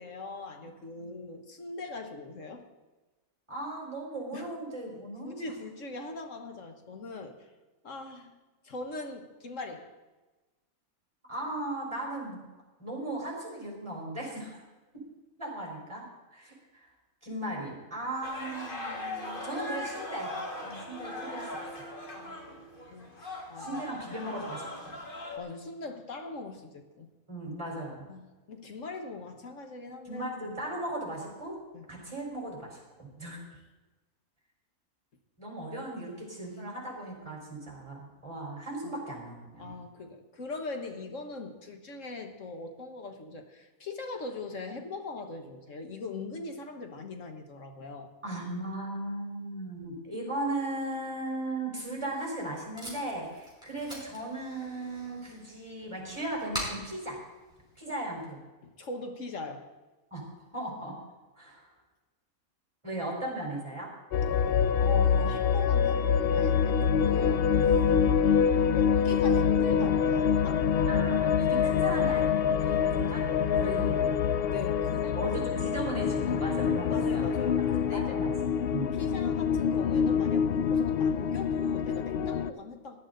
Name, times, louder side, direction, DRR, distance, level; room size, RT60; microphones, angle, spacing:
voice 1, 0.0-2.6 4.3-4.5 5.2-7.5 7.8-8.4 8.6-9.9 14.2-14.3 22.2-22.4 22.9-24.2 25.4-27.1 28.1-30.6 31.7-31.8 36.0-36.1 38.8-38.9 39.6-48.1 57.9-58.0 58.6-59.7 64.8-67.5 68.7-70.7 73.7-74.1 74.4-75.3 76.9-78.2 78.9-83.0, left 3 dB, 60° left, 5 dB, 1.5 m, -41 dB
voice 2, 3.5-5.5 11.2-12.4 12.8-14.6 15.4-16.9 17.2-20.3 20.6-21.7 23.6-24.9 27.3-28.1 30.0-31.6 31.9-33.4 35.4-39.7 48.2-57.2 57.8-58.4 60.1-60.9 61.4-61.6 62.8-63.9 70.9-73.2 73.5-74.4 75.2-77.3 77.9-78.9, right 1 dB, 20° right, -2 dB, 4.2 m, -37 dB
sound 1, 18.2-25.4, left 1 dB, 35° left, 1.9 m, -39 dB
Packing tape duct tape, 51.8-58.3, equal, 5° right, 4.9 m, -44 dB
sound 2, 64.1-82.5, left 7 dB, 80° left, 0.5 m, -25 dB
18.0 x 10.5 x 3.9 m, 1.2 s
omnidirectional pair, 1.5 m